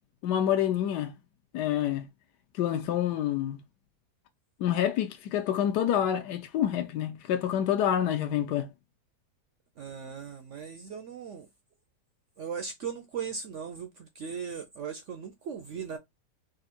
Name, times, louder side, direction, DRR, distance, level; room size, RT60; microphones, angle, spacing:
voice 1, 0.2-1.1 1.5-2.0 2.6-3.6 4.6-8.7, left 10 dB, 75° left, 1.2 m, -27 dB
voice 2, 9.8-11.5 12.4-16.0, right 6 dB, 70° right, 0.7 m, -38 dB
3.7 x 2.5 x 4.2 m
omnidirectional pair, 1.8 m